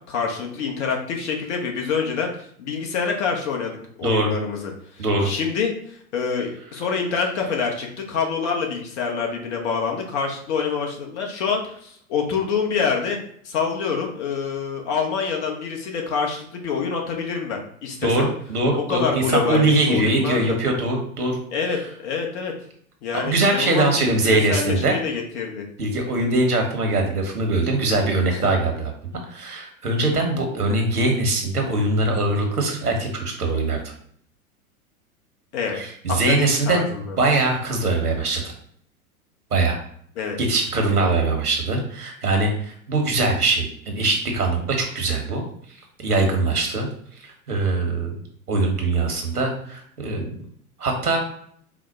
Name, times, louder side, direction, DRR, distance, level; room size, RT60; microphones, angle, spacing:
voice 1, 0.1-2.3 2.6-4.7 5.0-13.2 13.4-18.1 18.8-20.6 21.5-22.5 23.0-25.6 28.3-28.4 35.5-35.8 36.1-37.2 40.2-40.4, left 5 dB, 50° left, 1 dB, 1.3 m, -26 dB
voice 2, 5.0-5.3 18.0-21.4 23.1-25.0 25.8-28.9 29.3-33.8 35.7-36.8 37.2-38.5 39.5-39.8 40.4-45.4 46.0-46.9 47.2-48.1 48.5-50.3 50.8-51.2, right 2 dB, 85° right, 2 dB, 1.3 m, -22 dB
4.8 x 2.3 x 4.3 m, 0.63 s
figure-of-eight pair, 100°, 44 cm